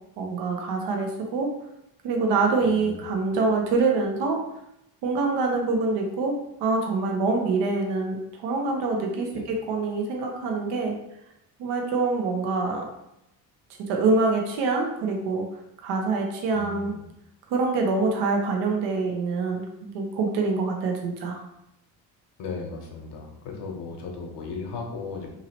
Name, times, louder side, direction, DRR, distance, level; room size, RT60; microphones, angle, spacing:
voice 1, 0.2-1.5 2.0-4.4 5.0-11.0 11.6-12.9 13.9-15.4 15.8-16.9 17.5-21.4, right 3 dB, 65° right, 1 dB, 0.7 m, -25 dB
voice 2, 2.6-3.0 9.3-9.5 16.5-17.0 22.4-25.3, left 4 dB, 70° left, 1 dB, 0.9 m, -36 dB
2.8 x 2.8 x 2.8 m, 0.84 s
supercardioid pair, 75°, 44 cm